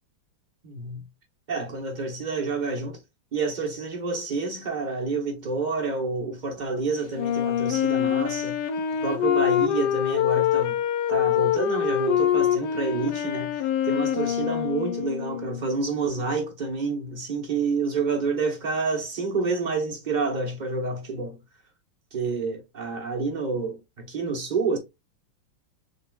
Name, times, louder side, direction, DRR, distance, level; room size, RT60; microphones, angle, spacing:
voice 1, 0.6-1.0 1.5-3.0 3.3-8.6 9.0-10.8 11.1-21.4 22.1-24.8, right 4 dB, 70° right, 0.4 m, -28 dB
Wind instrument woodwind instrument, 7.1-15.7, left 10 dB, 70° left, 1.1 m, -25 dB
6.7 x 2.3 x 2.2 m
omnidirectional pair, 2.1 m